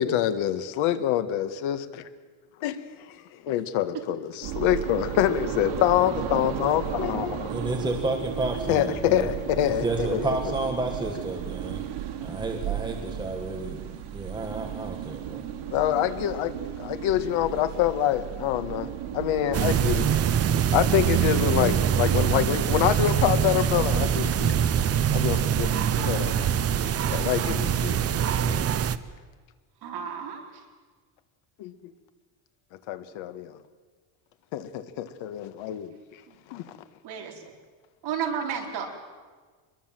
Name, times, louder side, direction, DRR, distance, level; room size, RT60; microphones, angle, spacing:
voice 1, 0.0-1.8 2.6-2.7 3.1-7.6 8.7-10.4 15.7-20.1 20.7-24.8 25.1-26.5 27.1-28.0 28.3-28.7 31.6-31.7 32.9-33.6 34.5-35.9 36.5-36.6, left 11 dB, 75° left, 10 dB, 1.7 m, -26 dB
sound 1, 4.4-22.3, right 9 dB, 85° right, 3.0 m, -34 dB
voice 2, 7.5-9.3 9.6-11.8 12.2-13.8 14.1-15.4, right 2 dB, 10° right, 2 dB, 1.7 m, -31 dB
sound 2, 19.5-29.0, right 9 dB, 30° right, 0.7 m, -24 dB
voice 3, 29.8-30.6 36.3-36.4 37.0-37.4 38.0-38.9, right 7 dB, 55° right, 1 dB, 4.5 m, -32 dB
25.0 x 21.5 x 7.6 m, 1.4 s
cardioid pair, 170°, 48 cm